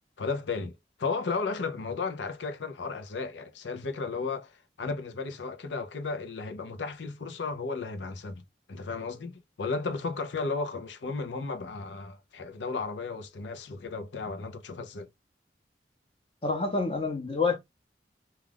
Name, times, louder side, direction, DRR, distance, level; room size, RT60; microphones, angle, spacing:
voice 1, 0.2-0.7 1.0-8.4 8.7-15.1, left 4 dB, 80° left, 0.6 m, -34 dB
voice 2, 16.4-17.6, left 4 dB, 30° left, 0.7 m, -27 dB
2.4 x 2.3 x 3.3 m
head